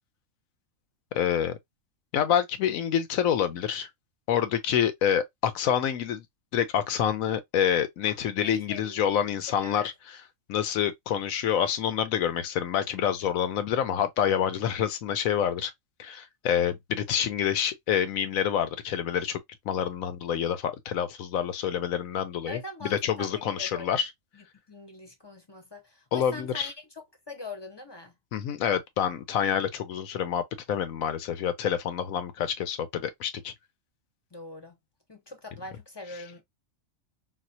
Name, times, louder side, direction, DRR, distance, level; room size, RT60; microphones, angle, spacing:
voice 1, 1.1-1.6 2.1-3.9 4.3-6.2 6.5-9.9 10.5-15.7 16.0-24.1 26.1-26.7 28.3-30.4 30.7-33.5, left 9 dB, 85° left, 1.1 m, -27 dB
voice 2, 8.4-9.0 9.6-9.9 22.5-24.0 24.3-26.7 27.3-28.1 34.3-34.8 35.1-36.4, left 2 dB, 25° left, 0.6 m, -42 dB
4.1 x 2.3 x 2.6 m
omnidirectional pair, 1.4 m